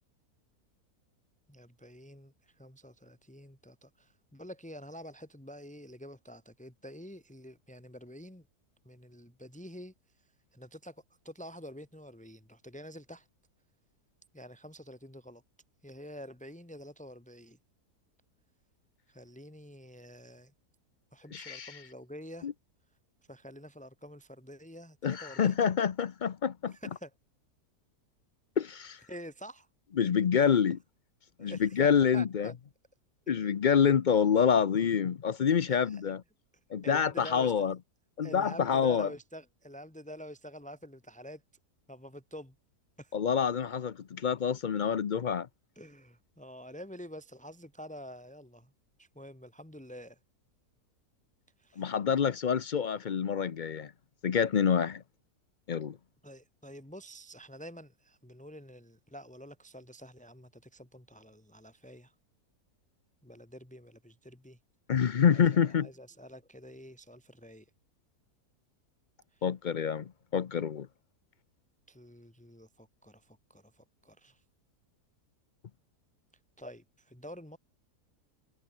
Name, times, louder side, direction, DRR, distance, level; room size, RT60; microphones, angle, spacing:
voice 1, 1.5-8.4 8.8-9.9 10.5-11.0 11.2-13.3 14.3-15.4 15.8-17.6 19.1-20.5 21.1-22.5 23.3-25.6 26.7-27.1 29.1-29.7 31.4-31.9 32.1-32.5 33.3-33.5 35.7-36.0 36.8-37.6 38.2-41.4 41.9-42.5 43.0-43.1 45.8-48.7 49.0-50.2 51.6-51.9 56.2-62.1 63.2-64.6 65.3-67.7 69.3-69.4 71.9-74.4 76.6-77.6, equal, 5° left, 2.7 m, -48 dB
voice 2, 21.3-21.8 22.4-22.5 25.0-26.7 28.6-29.0 30.0-30.8 31.4-32.5 33.3-36.2 36.7-37.7 38.2-39.1 43.1-45.5 51.8-53.9 54.2-55.0 55.7-56.0 64.9-65.9 69.4-70.9, left 7 dB, 55° left, 0.5 m, -27 dB
omnidirectional pair, 1.7 m